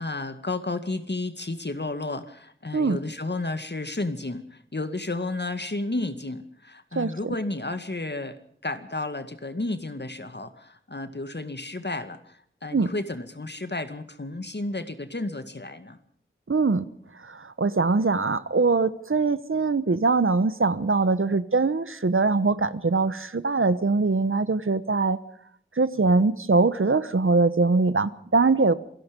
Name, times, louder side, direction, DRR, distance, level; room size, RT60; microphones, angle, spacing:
voice 1, 0.0-16.0, left 2 dB, 60° left, 10 dB, 2.1 m, -32 dB
voice 2, 16.5-16.8 17.2-25.2 25.8-28.7, right 3 dB, 90° right, 15 dB, 1.1 m, -22 dB
27.5 x 18.0 x 5.3 m, 0.65 s
wide cardioid pair, 45°, 20 cm